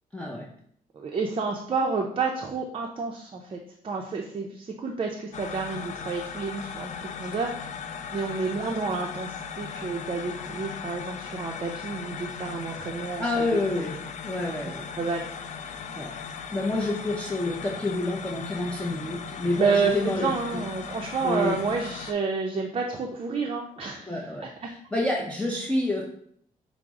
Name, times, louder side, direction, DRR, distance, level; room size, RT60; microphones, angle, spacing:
voice 1, 0.1-0.5 13.2-14.0 14.2-14.9 16.0-16.1 16.5-20.6 21.2-21.6 24.1-26.0, left 2 dB, 10° left, -2 dB, 0.6 m, -28 dB
voice 2, 0.9-7.8 8.1-13.5 14.6-15.3 19.6-24.1 24.4-24.7, right 4 dB, 35° right, 1 dB, 0.5 m, -30 dB
sound 1, 5.3-22.1, left 6 dB, 55° left, 0.4 m, -38 dB
5.8 x 2.0 x 3.6 m, 0.65 s
cardioid pair, 85°, 15 cm